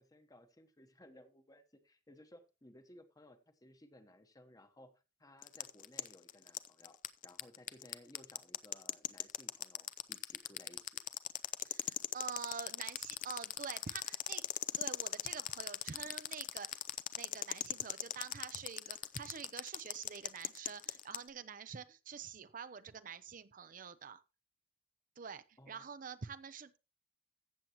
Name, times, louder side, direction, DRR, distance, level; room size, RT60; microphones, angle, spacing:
voice 1, 0.0-4.9 5.2-7.0 7.2-11.0 25.6-25.8, left 1 dB, 20° left, 1.0 m, -60 dB
sound 1, 5.4-21.2, left 12 dB, 45° left, 0.5 m, -39 dB
voice 2, 11.6-14.4 14.8-16.8 17.1-24.2 25.2-26.8, right 6 dB, 50° right, 0.6 m, -47 dB
15.0 x 7.4 x 2.9 m
head